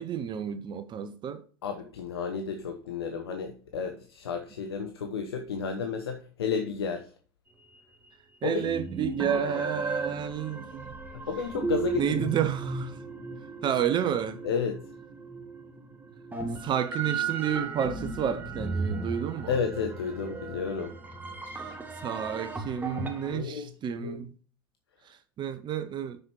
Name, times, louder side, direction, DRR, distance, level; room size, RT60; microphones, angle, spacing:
voice 1, 0.0-1.4 8.4-10.9 12.0-13.0 13.6-14.4 16.6-19.5 22.0-24.3 25.1-26.2, right 9 dB, 35° right, 0.8 m, -30 dB
voice 2, 1.6-7.1 8.4-8.7 9.4-9.7 11.1-12.3 14.4-14.8 19.5-21.0 23.3-24.2, left 6 dB, 80° left, 0.9 m, -32 dB
sound 1, 7.8-7.9 8.6-23.4, right 4 dB, 15° right, 1.8 m, -35 dB
6.5 x 6.0 x 4.6 m
hypercardioid pair, 80°, 13 cm